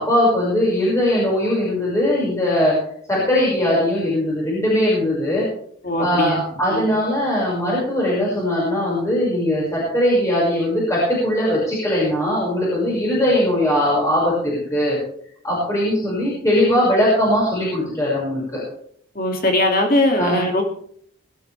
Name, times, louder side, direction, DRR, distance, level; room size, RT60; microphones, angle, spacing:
voice 1, 0.0-2.7 3.1-5.4 6.0-15.0 15.4-18.6 20.2-20.4, left 1 dB, 15° left, -6 dB, 5.8 m, -20 dB
voice 2, 5.8-6.4 6.7-6.9 19.2-20.6, left 1 dB, 45° left, 2 dB, 2.5 m, -20 dB
21.0 x 12.5 x 3.4 m, 0.62 s
head